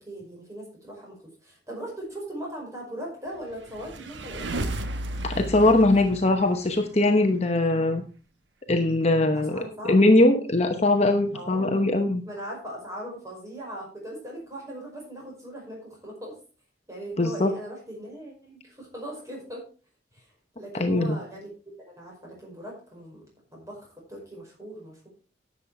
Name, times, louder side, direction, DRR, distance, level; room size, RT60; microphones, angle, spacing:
voice 1, 0.0-4.7 7.7-8.0 9.3-10.0 11.3-11.9 12.3-16.4 16.9-19.6 20.1-20.3 20.6-21.5 21.8-23.2 23.5-25.1, right 1 dB, 15° right, -1 dB, 5.1 m, -39 dB
sound 1, 3.5-7.1, right 1 dB, 85° right, 1.2 m, -34 dB
voice 2, 5.2-8.0 8.7-12.2 17.2-17.5 20.7-21.2, left 2 dB, 35° left, 6 dB, 0.9 m, -21 dB
11.0 x 7.4 x 4.7 m, 0.37 s
head